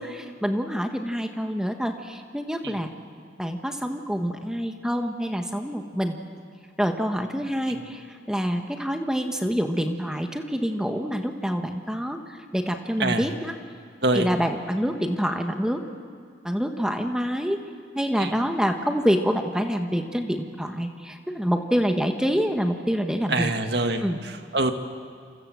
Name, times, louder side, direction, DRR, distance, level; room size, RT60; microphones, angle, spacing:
voice 1, 0.0-2.9 3.4-6.2 6.8-13.6 14.1-15.8 16.4-17.6 17.9-23.5 24.0-24.2, equal, 5° right, 5 dB, 1.4 m, -26 dB
voice 2, 23.3-24.7, right 2 dB, 65° right, 6 dB, 1.9 m, -25 dB
28.5 x 26.0 x 7.7 m, 2.1 s
head